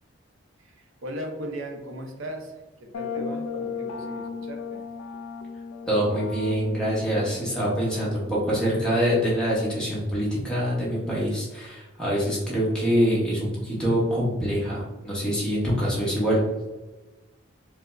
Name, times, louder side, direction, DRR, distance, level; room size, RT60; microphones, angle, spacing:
voice 1, 0.6-4.8, equal, 75° right, 3 dB, 0.5 m, -37 dB
sound 1, 2.9-10.6, left 5 dB, 85° left, 0.3 m, -37 dB
voice 2, 5.9-16.4, equal, 5° left, -7 dB, 0.9 m, -25 dB
4.5 x 2.0 x 2.4 m, 1.1 s
head